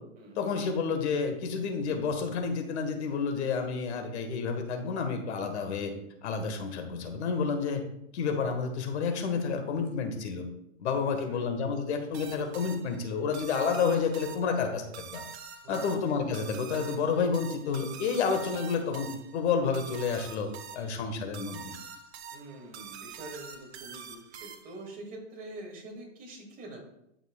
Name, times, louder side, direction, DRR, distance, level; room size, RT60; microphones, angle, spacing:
voice 1, 0.3-5.9 6.2-7.8 8.1-10.4 10.8-15.2 15.7-19.1 19.3-21.7, left 5 dB, 60° left, 5 dB, 1.6 m, -30 dB
voice 2, 10.9-11.4 15.6-16.0 22.3-26.9, right 2 dB, 25° right, -1 dB, 2.3 m, -45 dB
sound 1, 12.1-24.9, right 7 dB, 55° right, 1.0 m, -45 dB
11.5 x 6.0 x 2.4 m, 0.79 s
hypercardioid pair, 145°, 38 cm